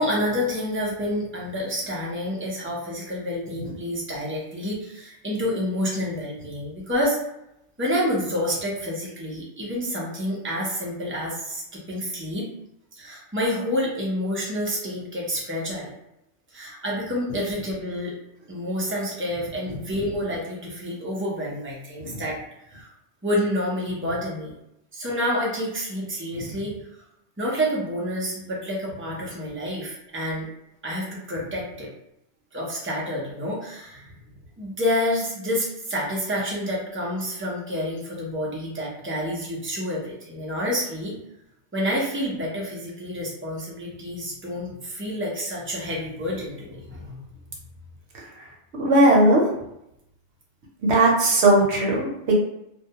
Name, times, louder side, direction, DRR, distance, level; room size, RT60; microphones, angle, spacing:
voice 1, 0.0-7.2 7.8-12.5 13.0-15.9 16.5-18.1 18.5-22.4 22.7-22.9 23.2-24.5 24.9-26.7 27.4-30.5 30.8-31.9 32.5-34.1 34.6-41.2 41.7-47.2, equal, 15° right, -4 dB, 0.4 m, -28 dB
voice 2, 48.8-49.5 50.9-52.4, right 1 dB, 70° right, -1 dB, 0.9 m, -18 dB
2.2 x 2.2 x 2.7 m, 0.83 s
omnidirectional pair, 1.2 m